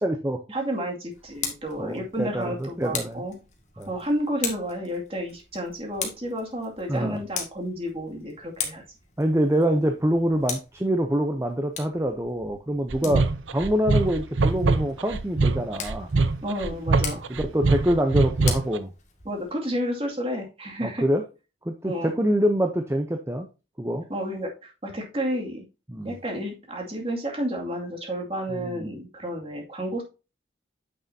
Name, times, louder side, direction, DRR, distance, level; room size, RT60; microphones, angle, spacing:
voice 1, 0.0-0.4 1.8-3.2 3.8-3.9 6.9-7.2 9.2-13.2 13.5-16.1 17.3-18.9 20.8-21.2 21.7-23.5 23.8-24.0 25.9-26.2 28.5-28.9, equal, 15° right, 5 dB, 0.7 m, -25 dB
voice 2, 0.5-3.4 3.9-8.8 13.0-13.2 16.4-17.2 19.2-21.0 21.8-22.1 24.1-25.6 26.0-30.0, equal, 30° right, 1 dB, 2.3 m, -31 dB
Tick, 1.1-19.5, left 6 dB, 40° left, 1.9 m, -39 dB
sound 1, 12.9-18.8, right 3 dB, 90° right, 0.7 m, -23 dB
9.2 x 6.3 x 2.7 m, 0.30 s
head